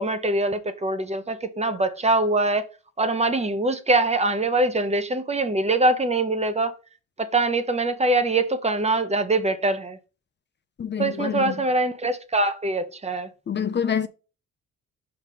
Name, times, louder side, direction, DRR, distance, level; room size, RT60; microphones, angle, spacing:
voice 1, 0.0-2.7 3.0-6.7 7.2-10.0 11.0-13.3, right 2 dB, 20° right, 0.7 m, -23 dB
voice 2, 10.8-11.5 13.5-14.1, left 8 dB, 35° left, 0.6 m, -26 dB
5.4 x 3.3 x 5.3 m
cardioid pair, 90°, 30 cm